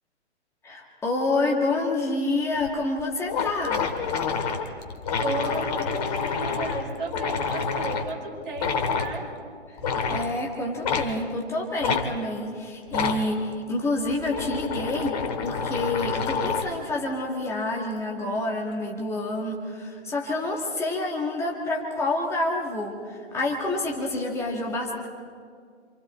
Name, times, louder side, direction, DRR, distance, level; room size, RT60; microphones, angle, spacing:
voice 1, 0.6-3.9 10.0-15.2 15.4-25.1, left 2 dB, 5° left, -1 dB, 1.6 m, -28 dB
sound 1, 2.6-2.7 3.0-3.1 3.3-8.1 8.6-9.1 9.8-10.3 10.8-11.1 11.8-12.0 12.9-13.2 14.0-16.8, left 5 dB, 35° left, 2.1 m, -28 dB
voice 2, 5.2-9.2, right 2 dB, 45° right, -3 dB, 7.3 m, -33 dB
27.5 x 27.5 x 4.2 m, 2.1 s
figure-of-eight pair, 140°, 35 cm